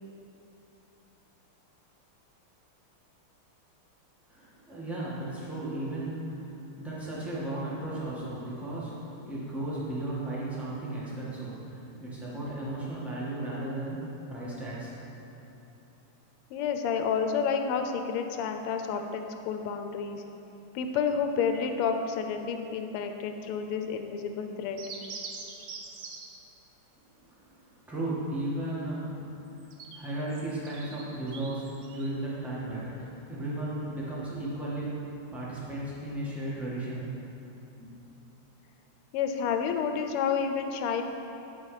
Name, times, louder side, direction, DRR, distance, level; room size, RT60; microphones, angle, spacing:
voice 1, 4.3-14.9 27.3-27.5 27.9-29.0 29.9-37.1 37.8-37.9, right 1 dB, ahead, -8 dB, 0.9 m, -35 dB
voice 2, 16.5-20.2 20.7-24.8 39.1-41.0, left 6 dB, 90° left, 6 dB, 1.5 m, -30 dB
sound 1, 24.8-26.4 29.5-32.1, right 4 dB, 65° right, 1.0 m, -44 dB
9.3 x 4.1 x 4.8 m, 3.0 s
omnidirectional pair, 2.4 m